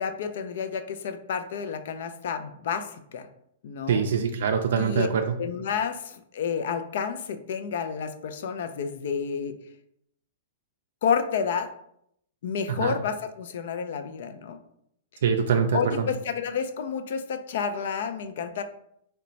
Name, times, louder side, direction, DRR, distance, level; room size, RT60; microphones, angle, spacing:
voice 1, 0.0-3.3 3.6-4.1 4.8-5.1 5.4-9.5 11.0-11.7 12.4-14.6 15.7-18.6, left 6 dB, 65° left, 9 dB, 0.4 m, -30 dB
voice 2, 3.9-5.2 12.7-12.9 15.2-16.0, right 6 dB, 75° right, 4 dB, 0.3 m, -24 dB
3.0 x 2.2 x 3.9 m, 0.72 s
hypercardioid pair, 140°, 0 cm